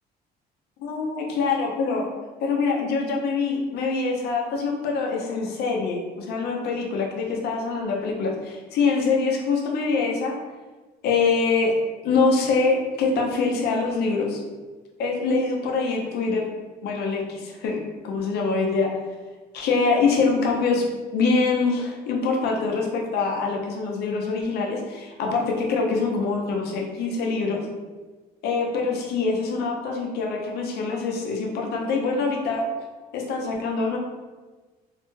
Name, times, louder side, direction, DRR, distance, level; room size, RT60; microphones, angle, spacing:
voice 1, 0.8-2.1 2.4-10.3 11.0-11.7 12.0-14.4 15.0-16.5 16.8-19.0 19.5-27.6 28.4-32.7 33.1-34.0, left 4 dB, 75° left, 0 dB, 0.6 m, -24 dB
2.6 x 2.2 x 3.0 m, 1.3 s
cardioid pair, 110°, 17 cm